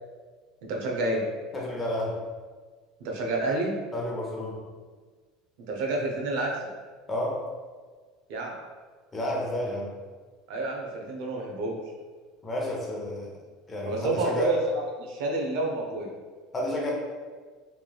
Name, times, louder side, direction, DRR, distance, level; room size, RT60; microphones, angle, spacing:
voice 1, 0.6-1.2 3.0-3.7 5.7-6.5 8.3-8.5 10.5-11.8 13.9-16.1, right 2 dB, 75° right, 0 dB, 0.5 m, -29 dB
voice 2, 1.5-2.2 3.9-4.6 7.1-7.4 9.1-9.9 12.4-13.3 13.7-14.6 16.5-16.9, left 1 dB, 25° left, -3 dB, 0.7 m, -30 dB
3.1 x 2.3 x 2.2 m, 1.5 s
supercardioid pair, 110°, 0 cm